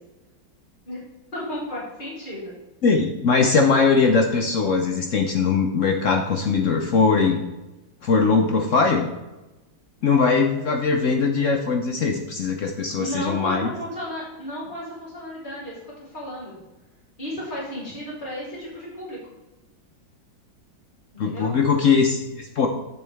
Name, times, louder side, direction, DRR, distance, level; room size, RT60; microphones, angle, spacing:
voice 1, 1.3-2.5 12.6-12.7 12.9-16.5 17.2-19.2 21.2-21.6, equal, 25° left, -7 dB, 3.4 m, -33 dB
voice 2, 2.8-7.4 8.0-9.1 10.0-13.7 21.2-22.7, left 4 dB, 65° left, 4 dB, 0.7 m, -20 dB
8.4 x 7.0 x 3.4 m, 1.1 s
omnidirectional pair, 2.1 m